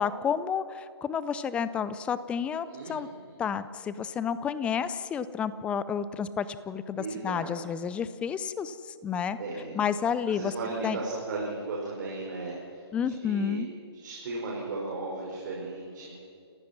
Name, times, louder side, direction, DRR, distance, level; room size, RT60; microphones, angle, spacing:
voice 1, 0.0-3.1 3.4-8.7 9.0-9.4 9.7-10.5 10.8-11.0 12.9-13.7, left 7 dB, 10° left, 15 dB, 0.5 m, -30 dB
voice 2, 2.6-3.3 6.9-7.6 9.4-9.8 10.3-13.6 13.9-16.1, right 3 dB, 45° right, -3 dB, 5.0 m, -36 dB
29.5 x 15.5 x 6.0 m, 2.4 s
figure-of-eight pair, 135°, 14 cm